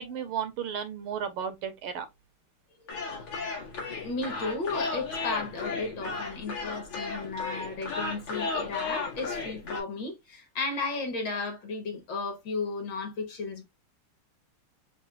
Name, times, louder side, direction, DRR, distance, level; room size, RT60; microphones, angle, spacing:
voice 1, 0.0-2.1, right 8 dB, 80° right, 1.7 m, -34 dB
sound 1, 2.9-9.8, left 3 dB, 90° left, 3.1 m, -34 dB
voice 2, 4.0-13.6, left 3 dB, 60° left, 1.8 m, -34 dB
7.2 x 2.5 x 2.3 m
omnidirectional pair, 2.4 m